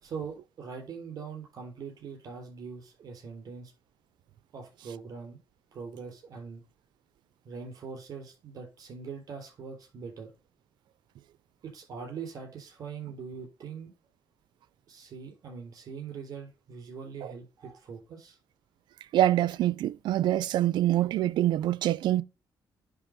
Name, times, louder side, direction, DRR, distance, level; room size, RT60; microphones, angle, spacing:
voice 1, 0.0-3.7 4.5-5.4 5.7-6.6 7.5-10.3 11.6-13.9 14.9-18.4, right 5 dB, 55° right, 3.5 m, -42 dB
voice 2, 19.1-22.2, right 13 dB, 85° right, 0.5 m, -25 dB
9.9 x 3.4 x 5.1 m
cardioid pair, 140°, 8 cm